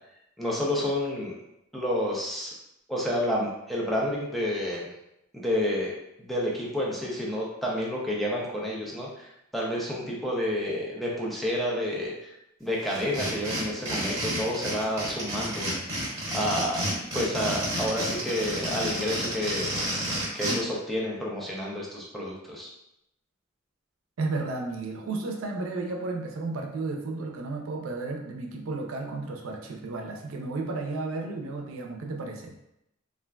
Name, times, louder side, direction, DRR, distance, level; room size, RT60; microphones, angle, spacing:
voice 1, 0.4-1.3 1.7-2.5 2.9-4.9 5.3-5.9 6.2-12.3 12.6-15.7 16.3-16.8 17.1-19.7 20.3-22.7, left 1 dB, ahead, -4 dB, 0.5 m, -29 dB
sound 1, 12.9-20.5, equal, 15° right, 1.0 m, -30 dB
voice 2, 24.2-32.5, right 3 dB, 90° right, 1 dB, 0.5 m, -33 dB
3.3 x 2.4 x 2.2 m, 0.82 s
head